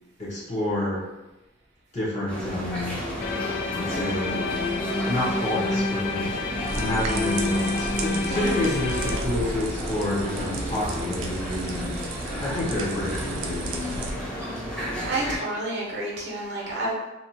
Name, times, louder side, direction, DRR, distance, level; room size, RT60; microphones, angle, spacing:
voice 1, 0.2-1.0 1.9-3.1 3.8-4.5 5.1-6.4 6.7-12.0 12.4-14.3, left 1 dB, 40° left, -6 dB, 0.8 m, -29 dB
sound 1, 2.3-15.4, left 1 dB, 5° left, 0.6 m, -32 dB
sound 2, 3.2-9.2, left 3 dB, 55° left, 0.3 m, -29 dB
sound 3, 6.7-14.1, right 2 dB, 90° right, 0.4 m, -34 dB
voice 2, 8.3-8.6 15.0-16.9, right 2 dB, 60° right, -3 dB, 0.8 m, -29 dB
2.8 x 2.3 x 2.7 m, 1.0 s
head